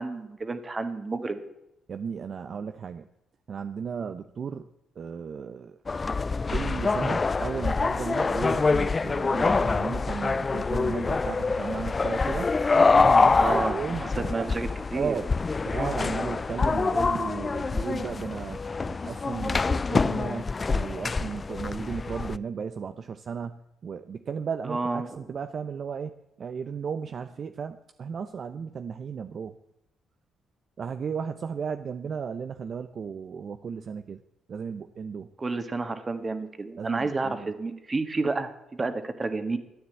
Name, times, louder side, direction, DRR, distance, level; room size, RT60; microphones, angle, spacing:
voice 1, 0.0-1.4 13.3-15.2 24.6-25.2 35.4-39.6, right 3 dB, 30° right, 9 dB, 1.8 m, -30 dB
voice 2, 1.9-3.1 3.5-4.6 5.0-5.8 6.5-12.5 13.0-14.5 14.9-15.3 15.6-18.6 18.8-26.1 26.4-29.5 30.8-34.2 34.5-35.3 36.8-37.5, right 6 dB, 50° right, 9 dB, 0.7 m, -35 dB
sound 1, 5.9-22.4, left 4 dB, 30° left, 0.4 m, -25 dB
13.0 x 9.6 x 8.2 m, 0.85 s
cardioid pair, 90°, 0 cm